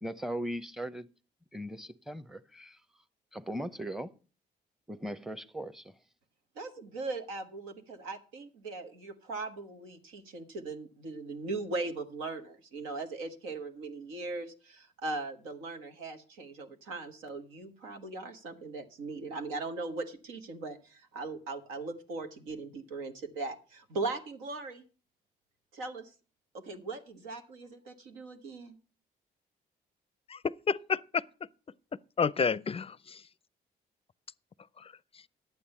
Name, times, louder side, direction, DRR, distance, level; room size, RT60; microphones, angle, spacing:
voice 1, 0.0-1.1 1.5-2.8 3.3-4.1 4.9-5.9, right 1 dB, ahead, 0.8 m, -38 dB
voice 2, 6.5-24.8 25.7-26.1 26.5-28.8, right 3 dB, 90° right, 1.4 m, -39 dB
voice 3, 30.3-31.2 32.2-33.2 34.8-34.9, left 5 dB, 30° left, 0.5 m, -30 dB
11.5 x 8.7 x 5.5 m
supercardioid pair, 55°, 20 cm